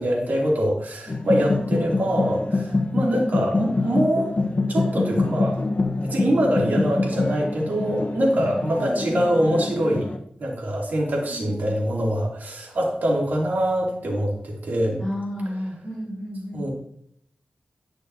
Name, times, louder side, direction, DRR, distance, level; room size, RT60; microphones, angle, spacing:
voice 1, 0.0-4.3 4.7-5.6 6.0-10.1 10.4-15.0 16.5-16.7, equal, 75° right, -3 dB, 2.6 m, -24 dB
sound 1, 1.1-10.2, left 3 dB, 50° left, 1.0 m, -25 dB
voice 2, 3.0-3.4 8.8-9.6 11.3-11.7 15.0-16.7, equal, 15° left, -7 dB, 3.7 m, -33 dB
11.0 x 6.3 x 2.7 m, 0.69 s
cardioid pair, 50°, 3 cm